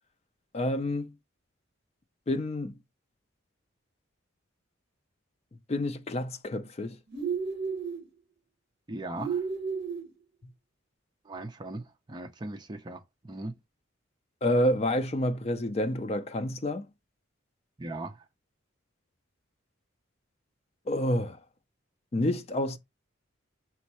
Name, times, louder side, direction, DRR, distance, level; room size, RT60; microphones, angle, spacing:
voice 1, 0.5-1.1 2.3-2.8 5.7-7.0 14.4-16.9 20.9-21.4 22.1-22.8, left 1 dB, 30° left, 0.4 m, -28 dB
sound 1, 7.1-8.0 9.2-10.1, right 5 dB, 55° right, 0.9 m, -32 dB
voice 2, 8.9-9.4 11.2-13.6 17.8-18.3, right 2 dB, 20° right, 0.5 m, -39 dB
4.4 x 3.2 x 2.9 m
head